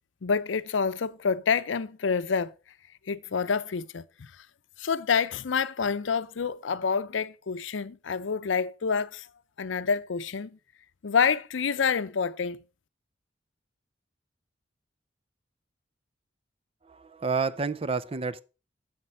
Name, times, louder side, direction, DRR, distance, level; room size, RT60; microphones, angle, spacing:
voice 1, 0.2-2.5 3.1-4.3 4.8-9.3 9.6-10.5 11.0-12.6, left 6 dB, 85° left, 0.6 m, -27 dB
voice 2, 16.8-18.4, right 4 dB, 30° right, 0.5 m, -29 dB
7.6 x 7.4 x 5.3 m
head